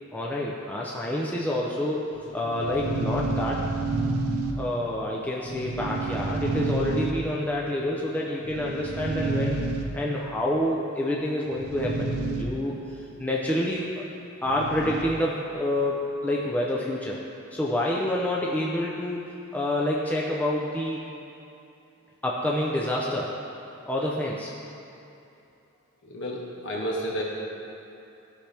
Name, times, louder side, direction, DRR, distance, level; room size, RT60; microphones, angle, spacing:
voice 1, 0.1-2.0 2.3-3.6 4.6-9.7 9.9-14.0 14.4-17.2 17.5-19.2 19.5-21.0 22.2-23.3 23.9-24.5, left 1 dB, 5° left, -4 dB, 0.6 m, -28 dB
sound 1, 2.2-5.0 5.4-7.5 8.4-10.2 11.5-12.4 12.7-12.8 14.4-15.2, right 3 dB, 80° right, 0.8 m, -29 dB
voice 2, 26.0-27.2, equal, 55° left, -3 dB, 1.6 m, -31 dB
15.0 x 5.6 x 3.4 m, 2.8 s
head